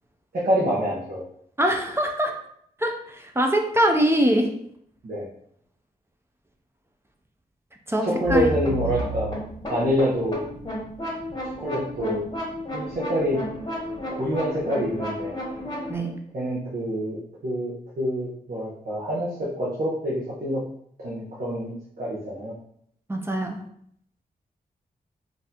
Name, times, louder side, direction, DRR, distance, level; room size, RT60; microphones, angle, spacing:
voice 1, 0.3-1.3 5.0-5.3 8.0-9.3 9.7-10.4 11.6-12.2 12.7-13.4 14.1-15.3 16.3-20.6 21.0-22.5, equal, 60° right, -6 dB, 0.8 m, -26 dB
voice 2, 1.6-2.3 2.8-4.5 7.9-8.5 8.9-9.0 15.9-16.1 23.1-23.6, right 1 dB, 15° right, 3 dB, 0.4 m, -23 dB
sound 1, 8.2-16.0, equal, 25° left, 1.0 m, -32 dB
3.9 x 2.6 x 2.8 m, 0.68 s
wide cardioid pair, 115°, 16 cm